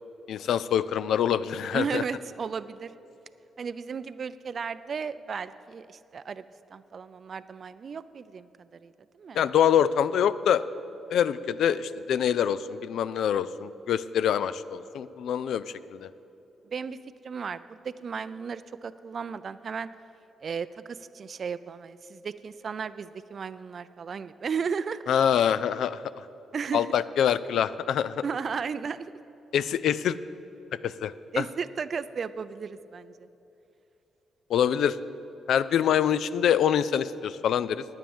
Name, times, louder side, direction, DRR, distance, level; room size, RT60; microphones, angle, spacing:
voice 1, 0.3-2.0 9.3-10.6 11.1-15.6 15.9-16.1 25.1-26.0 26.7-28.2 29.5-30.2 30.8-31.4 34.5-35.0 35.5-37.9, left 9 dB, 75° left, 15 dB, 0.4 m, -25 dB
voice 2, 1.7-2.9 3.6-6.4 6.7-8.5 8.8-8.9 9.2-9.5 16.7-17.0 17.2-19.9 20.4-25.0 26.5-26.9 28.2-29.1 31.3-33.3, right 6 dB, 50° right, 14 dB, 0.4 m, -34 dB
10.0 x 9.2 x 7.1 m, 3.0 s
cardioid pair, 80°, 0 cm